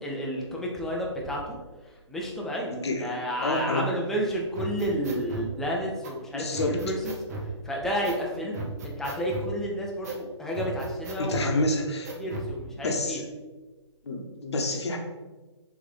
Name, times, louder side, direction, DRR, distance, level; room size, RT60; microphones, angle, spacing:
voice 1, 0.0-1.6 2.1-2.7 3.0-7.1 7.7-11.5 12.2-13.2, equal, ahead, -2 dB, 0.4 m, -31 dB
voice 2, 2.7-3.1 3.4-3.9 6.3-6.8 11.2-12.1 12.8-13.3 14.0-15.0, left 2 dB, 65° left, 2 dB, 0.8 m, -28 dB
sound 1, 4.5-5.5 6.0-6.1 6.5-7.5 8.0-8.2 8.5-9.5 10.0-10.2 10.5-11.5 12.0-12.5, right 2 dB, 35° right, 0.7 m, -36 dB
3.7 x 3.5 x 3.2 m, 1.3 s
figure-of-eight pair, 140°, 15 cm